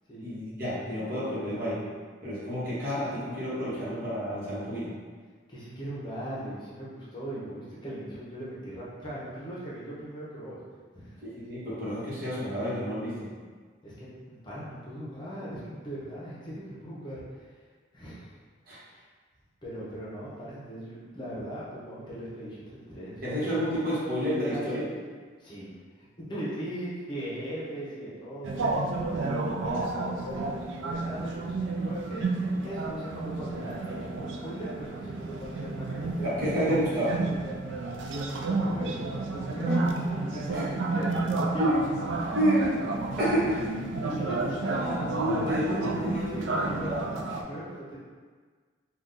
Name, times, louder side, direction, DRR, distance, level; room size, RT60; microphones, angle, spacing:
voice 1, 0.2-1.8 2.2-4.9 11.2-13.3 18.7-18.8 23.2-24.8 36.2-37.1 39.7-39.8 40.5-40.6 41.6-41.8 42.3-42.7 43.2-43.4 44.4-46.2 46.6-47.1, equal, 50° right, -9 dB, 1.1 m, -29 dB
voice 2, 5.5-10.6 10.9-11.2 13.8-17.2 17.9-18.3 18.9-19.0 19.6-23.6 24.5-24.7 25.4-25.7 26.2-28.6 29.1-32.2 32.6-36.3 38.2-39.0 39.3-41.7 42.6-42.7 43.2-43.6 44.0-44.8 46.0-48.0, right 1 dB, 25° left, -8 dB, 0.7 m, -39 dB
sound 1, 28.4-47.4, right 3 dB, 90° right, 0.3 m, -31 dB
2.6 x 2.3 x 3.6 m, 1.5 s
head